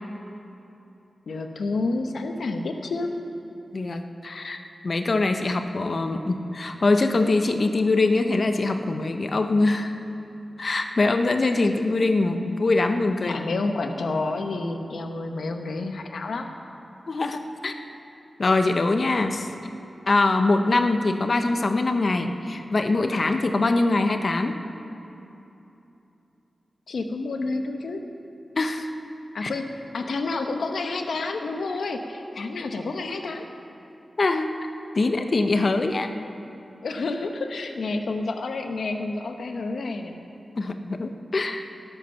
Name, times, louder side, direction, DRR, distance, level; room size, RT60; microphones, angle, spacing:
voice 1, 1.3-3.1 13.2-16.5 26.9-28.0 29.3-33.4 36.8-40.2, left 3 dB, 80° left, 5 dB, 1.0 m, -29 dB
voice 2, 3.7-9.9 10.6-13.4 17.1-17.7 18.4-19.5 20.1-24.6 28.6-28.9 29.4-29.5 34.2-34.5 34.9-36.1 40.6-41.6, left 2 dB, 45° left, 7 dB, 0.8 m, -23 dB
18.5 x 8.2 x 5.6 m, 2.9 s
wide cardioid pair, 120°, 0 cm